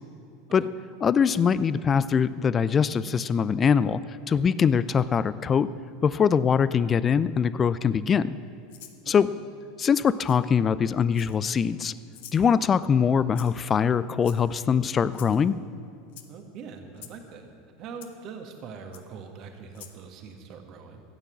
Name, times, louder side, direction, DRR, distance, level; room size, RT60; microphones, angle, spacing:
voice 1, 1.0-4.0 4.3-5.7 6.0-8.4 9.1-9.3 9.8-11.9 12.3-15.6, left 7 dB, 30° left, 17 dB, 0.4 m, -22 dB
Rattle (instrument), 8.7-9.0 10.3-10.4 11.1-11.6 12.1-12.4 13.3-13.7 14.2-14.6 15.1-15.4 16.1-16.3 17.0-17.2 18.0-18.1 18.9-19.0 19.7-20.0, left 11 dB, 65° left, 0.9 m, -47 dB
voice 2, 16.3-17.5 17.8-21.0, right 5 dB, 45° right, 4 dB, 1.7 m, -42 dB
13.5 x 9.0 x 7.3 m, 2.5 s
figure-of-eight pair, 80°, 0 cm